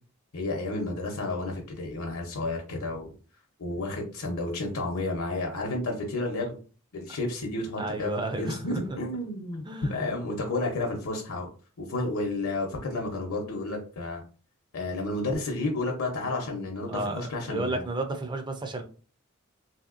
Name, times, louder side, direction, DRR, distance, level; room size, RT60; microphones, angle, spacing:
voice 1, 0.3-3.1 3.6-6.5 6.9-8.1 8.4-11.5 11.8-14.2 14.7-17.9, left 2 dB, 80° left, 0.7 m, -31 dB
voice 2, 7.8-8.8 9.7-10.1 16.9-18.8, right 2 dB, 20° right, 0.4 m, -32 dB
3.1 x 2.8 x 2.4 m
head